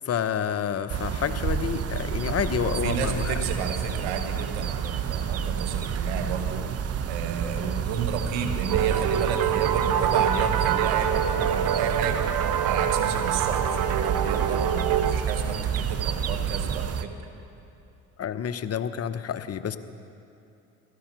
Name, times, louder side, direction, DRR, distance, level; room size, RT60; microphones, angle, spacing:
voice 1, 0.0-3.4 18.2-19.8, left 8 dB, 45° left, 11 dB, 0.9 m, -29 dB
sound 1, 0.9-17.0, right 8 dB, 45° right, 0.9 m, -29 dB
voice 2, 2.6-6.6 7.1-12.2 12.6-17.1, right 6 dB, 90° right, 7 dB, 1.3 m, -32 dB
sound 2, 8.7-15.1, right 8 dB, 65° right, 1.0 m, -25 dB
16.0 x 13.5 x 6.1 m, 2.8 s
supercardioid pair, 60°, 34 cm